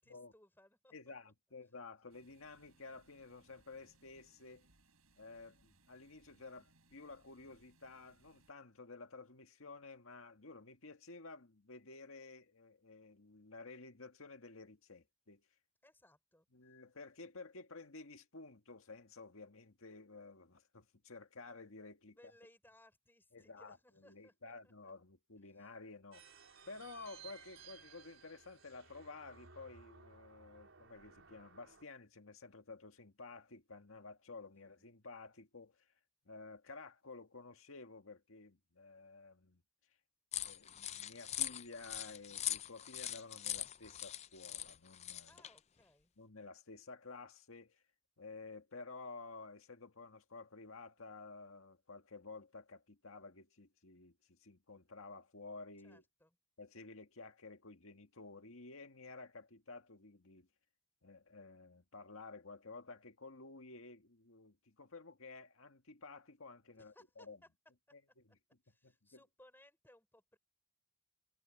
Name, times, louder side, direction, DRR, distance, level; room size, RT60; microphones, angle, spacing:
voice 1, 0.0-0.9 15.8-16.5 22.1-24.9 25.4-25.7 34.6-34.8 45.3-46.1 55.8-56.4 66.7-67.5 68.6-70.4, left 1 dB, 10° left, 5.1 m, -66 dB
voice 2, 0.9-4.7 5.1-15.4 16.5-22.2 23.3-26.3 26.7-35.9 36.3-39.6 40.4-45.4 46.2-47.8 48.2-56.0 56.6-60.5 61.0-67.4 67.9-68.0 68.8-69.2, left 3 dB, 75° left, 1.7 m, -53 dB
sound 1, 2.1-8.5, right 2 dB, 85° right, 7.0 m, -71 dB
sound 2, 26.1-31.8, right 6 dB, 70° right, 4.1 m, -59 dB
sound 3, 40.3-45.6, left 12 dB, 30° left, 0.4 m, -42 dB
head